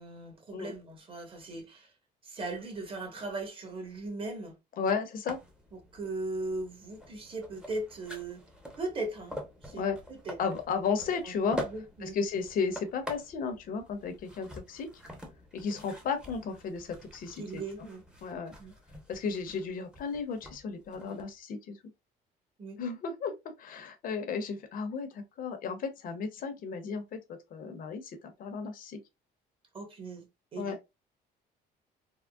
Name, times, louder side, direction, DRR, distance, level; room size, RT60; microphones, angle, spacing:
voice 1, 0.0-1.9 2.2-4.6 5.7-8.4 8.8-9.3 9.6-10.4 11.0-11.3 11.6-12.2 15.7-15.8 17.4-18.0 18.6-18.7 22.6-22.8 29.7-30.3 30.5-30.8, right 2 dB, 30° right, 1.2 m, -38 dB
voice 2, 4.8-5.4 9.7-10.0 10.4-11.6 12.0-14.9 15.5-17.9 18.2-18.5 19.1-21.8 22.8-23.3 23.6-27.2 27.5-29.0 30.6-30.8, left 5 dB, 55° left, 0.8 m, -34 dB
sound 1, 5.3-21.3, equal, 5° right, 0.8 m, -46 dB
3.5 x 2.1 x 2.3 m
cardioid pair, 110°, 17 cm